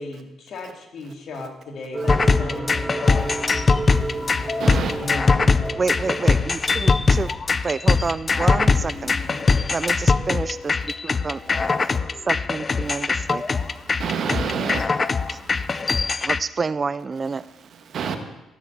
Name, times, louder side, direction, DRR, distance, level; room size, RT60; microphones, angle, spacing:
voice 1, 0.0-3.4 4.9-5.5 9.2-9.6, left 3 dB, 60° left, 1 dB, 2.9 m, -36 dB
sound 1, 1.9-7.0, right 2 dB, 15° right, 0.9 m, -32 dB
sound 2, 2.1-16.4, left 4 dB, 35° left, 0.6 m, -21 dB
voice 2, 3.9-5.0 11.9-12.0 12.8-12.9 13.3-13.7 14.0-15.7 17.7-18.2, right 6 dB, 65° right, 6 dB, 1.7 m, -30 dB
voice 3, 5.8-7.3 7.6-9.1 9.7-10.8 11.0-11.4 12.3-13.4 15.3-15.4 16.2-17.4, right 4 dB, 35° right, 16 dB, 0.3 m, -28 dB
14.5 x 6.5 x 8.5 m, 0.97 s
cardioid pair, 90°, 0 cm